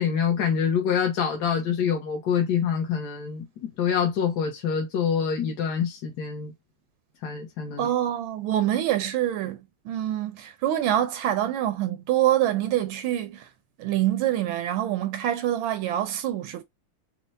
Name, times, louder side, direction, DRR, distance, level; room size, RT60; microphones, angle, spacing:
voice 1, 0.0-6.5 7.2-7.9, left 7 dB, 65° left, 1.1 m, -26 dB
voice 2, 7.8-9.6 9.9-13.4 13.8-16.6, right 12 dB, 80° right, 1.3 m, -25 dB
4.4 x 2.1 x 2.6 m
omnidirectional pair, 2.2 m